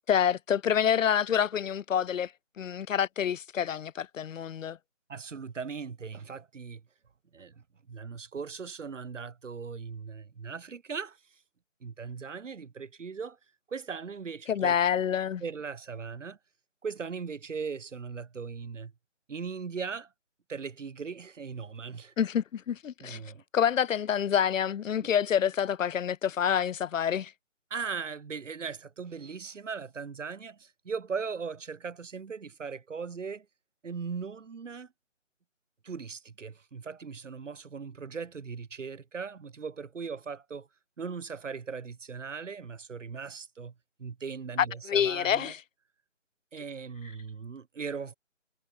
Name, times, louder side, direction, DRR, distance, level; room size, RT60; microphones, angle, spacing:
voice 1, 0.1-2.3 2.6-4.8 14.5-15.4 22.2-27.3 44.6-45.6, left 8 dB, 85° left, 0.5 m, -27 dB
voice 2, 5.1-6.8 7.3-11.2 11.8-13.4 13.7-14.8 15.4-16.4 16.8-18.9 19.3-20.1 20.5-22.1 23.0-23.4 27.7-33.5 33.8-34.9 35.8-40.7 41.0-43.7 44.0-45.5 46.5-48.2, right 5 dB, 75° right, 1.1 m, -39 dB
figure-of-eight pair, 175°, 38 cm